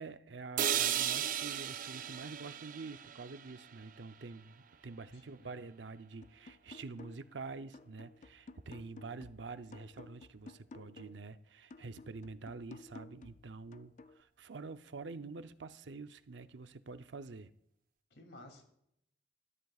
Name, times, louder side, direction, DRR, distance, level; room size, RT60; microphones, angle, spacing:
voice 1, 0.0-17.5, right 4 dB, 90° right, 0.7 m, -47 dB
sound 1, 0.6-4.6, right 10 dB, 50° right, 0.5 m, -36 dB
voice 2, 5.1-5.6 18.1-18.6, left 1 dB, 80° left, 2.8 m, -55 dB
sound 2, 6.2-7.4 7.7-11.3 11.7-14.2, left 3 dB, 45° left, 0.5 m, -54 dB
20.5 x 13.5 x 2.4 m
head